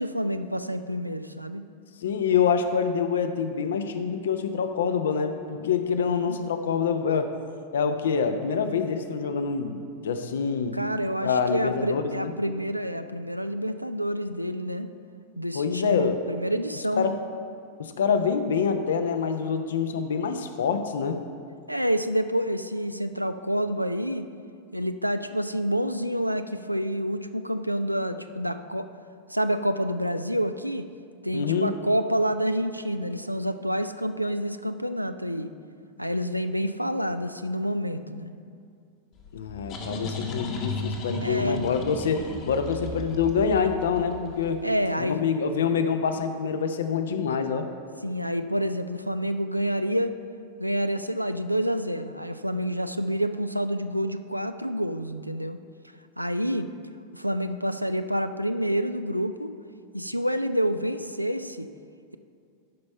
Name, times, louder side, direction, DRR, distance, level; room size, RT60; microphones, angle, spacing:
voice 1, 0.0-1.6 6.0-6.4 10.7-14.9 15.4-17.1 21.7-24.2 24.7-28.9 29.3-30.8 31.2-35.5 36.0-38.3 41.2-41.7 44.6-45.2 48.0-50.2 50.6-55.6 56.2-56.7 57.1-59.5 59.9-61.7, equal, 90° right, 10 dB, 0.4 m, -28 dB
voice 2, 2.0-7.3 7.7-10.8 11.2-12.3 15.5-16.2 17.0-17.2 17.8-21.2 31.3-31.7 39.3-44.6 45.0-47.7, left 6 dB, 65° left, 7 dB, 0.6 m, -26 dB
sound 1, 39.2-44.7, left 3 dB, 40° left, 1.1 m, -35 dB
12.0 x 5.3 x 4.4 m, 2.4 s
figure-of-eight pair, 90°, 0 cm